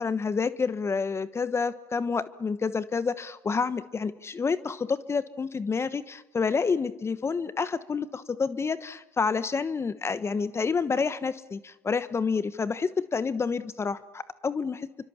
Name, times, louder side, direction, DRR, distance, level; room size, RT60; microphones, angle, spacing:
voice 1, 0.0-14.9, left 5 dB, 25° left, 14 dB, 1.1 m, -29 dB
28.5 x 24.5 x 7.2 m, 1.0 s
hypercardioid pair, 75°, 10 cm